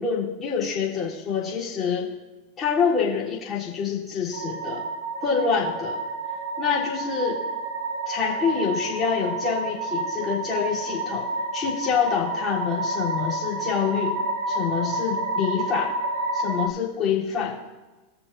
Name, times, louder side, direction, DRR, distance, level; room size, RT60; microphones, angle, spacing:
voice 1, 0.0-2.1 2.6-4.8 5.2-6.0 6.6-7.4 8.1-11.3 11.5-14.2 14.5-15.9 16.3-17.6, left 6 dB, 30° left, -6 dB, 3.6 m, -26 dB
Eerie Angels, 4.3-16.7, right 2 dB, 60° right, 1.1 m, -29 dB
18.5 x 6.8 x 2.7 m, 1.1 s
hypercardioid pair, 100°, 0 cm